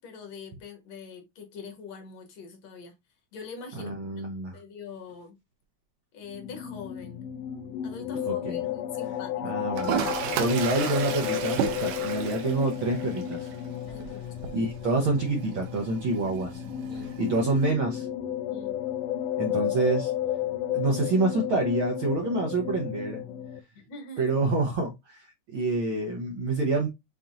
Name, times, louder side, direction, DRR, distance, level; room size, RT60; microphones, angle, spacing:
voice 1, 0.0-2.9 3.3-5.4 6.1-7.3 7.8-9.6 13.9-14.4 16.9-17.1 18.5-18.8 23.7-24.3, left 5 dB, 65° left, 2.0 m, -44 dB
voice 2, 3.7-4.6 8.3-8.6 9.4-13.5 14.5-16.6 17.2-18.1 19.4-20.1 20.7-23.2 24.2-26.9, right 2 dB, 70° right, 1.2 m, -27 dB
sound 1, 6.2-23.6, left 11 dB, 90° left, 1.4 m, -33 dB
Toilet flush, 9.7-17.7, right 8 dB, 85° right, 2.3 m, -34 dB
7.1 x 2.9 x 2.6 m
omnidirectional pair, 3.6 m